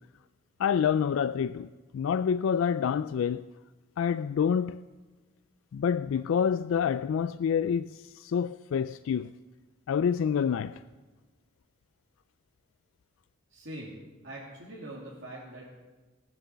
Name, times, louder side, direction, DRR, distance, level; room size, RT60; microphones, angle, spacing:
voice 1, 0.6-1.7 1.9-3.5 4.0-4.8 5.7-9.3 9.9-10.8, left 7 dB, 75° left, 0.3 m, -27 dB
voice 2, 13.5-15.7, right 1 dB, 60° right, 2.6 m, -43 dB
18.5 x 7.6 x 6.8 m
head